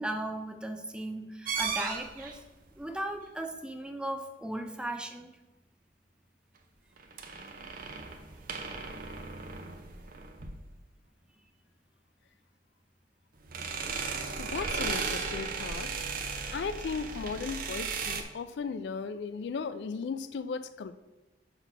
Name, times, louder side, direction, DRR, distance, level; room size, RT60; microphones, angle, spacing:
voice 1, 0.0-2.4 2.8-5.3, right 1 dB, 5° right, 6 dB, 0.5 m, -37 dB
sound 1, 1.4-2.4 7.0-10.8 13.4-18.2, right 5 dB, 50° right, 0.7 m, -36 dB
voice 2, 14.4-15.9 16.5-21.0, left 5 dB, 65° left, 12 dB, 0.4 m, -36 dB
6.0 x 4.0 x 5.4 m, 1.1 s
head